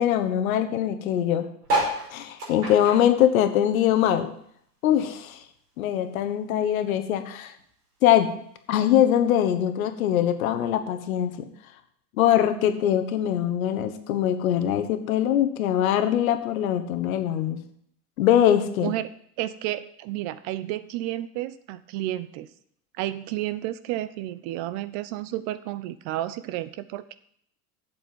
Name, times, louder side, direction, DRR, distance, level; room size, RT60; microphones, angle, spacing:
voice 1, 0.0-1.4 2.1-4.3 4.8-5.4 5.8-7.5 8.0-8.3 8.7-11.4 12.1-17.6 18.2-18.9, left 10 dB, 60° left, 8 dB, 1.3 m, -22 dB
sound 1, 1.6-4.4 4.7-6.2 6.7-6.8 7.0-7.1 7.3-7.7 8.5-8.6, right 1 dB, 75° right, 5.5 m, -30 dB
voice 2, 19.4-22.5 23.0-27.1, right 14 dB, 40° right, 14 dB, 0.6 m, -31 dB
8.0 x 7.9 x 7.5 m, 0.68 s
figure-of-eight pair, 80°, 47 cm